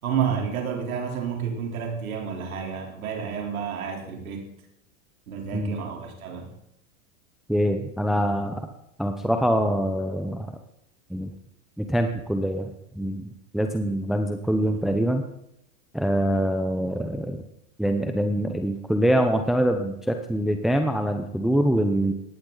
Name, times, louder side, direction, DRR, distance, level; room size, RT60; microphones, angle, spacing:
voice 1, 0.0-4.5 5.3-6.5, right 7 dB, 90° right, 1 dB, 3.8 m, -30 dB
voice 2, 7.5-8.7 9.0-10.6 11.1-11.3 11.8-15.2 15.9-17.4 17.8-22.1, equal, ahead, 5 dB, 0.8 m, -24 dB
18.0 x 11.5 x 4.0 m, 0.79 s
supercardioid pair, 130°, 41 cm